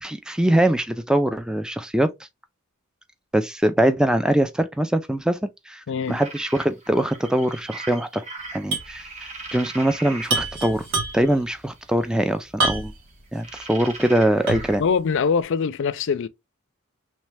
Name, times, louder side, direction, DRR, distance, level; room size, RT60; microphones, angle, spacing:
voice 1, 0.0-2.1 3.3-8.2 8.5-9.1 9.5-10.8 11.1-12.9 13.3-14.8, right 1 dB, 5° right, 0.4 m, -22 dB
voice 2, 5.9-6.2 14.8-16.3, left 6 dB, 60° left, 0.4 m, -23 dB
sound 1, 6.1-10.6 11.5-12.1 13.4-14.8, right 3 dB, 35° right, 1.1 m, -39 dB
sound 2, 8.7-9.0 9.2-9.3 10.2-11.4 12.6-13.1 13.6-13.7 14.5-14.8, right 2 dB, 65° right, 1.4 m, -26 dB
3.1 x 3.1 x 3.3 m
head